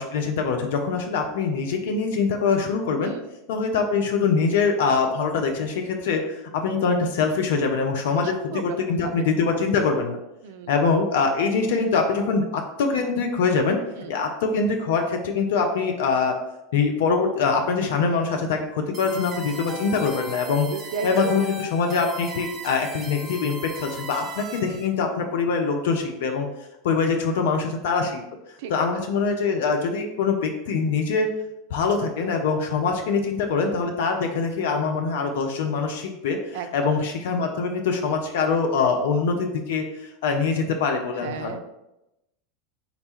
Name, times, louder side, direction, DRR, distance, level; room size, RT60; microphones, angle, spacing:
voice 1, 0.0-3.1 3.5-10.2 10.7-13.8 14.1-16.3 16.7-20.7 21.0-26.5 26.8-28.2 28.7-31.3 31.7-41.6, left 5 dB, 60° left, 4 dB, 0.4 m, -24 dB
voice 2, 8.1-9.2 10.4-10.8 14.0-14.1 20.7-21.5 28.6-28.9 36.5-36.9 41.2-41.6, right 7 dB, 55° right, 9 dB, 0.3 m, -35 dB
sound 1, 18.9-24.9, right 1 dB, 30° right, 0.7 m, -38 dB
4.0 x 2.2 x 4.2 m, 0.91 s
figure-of-eight pair, 80°, 0 cm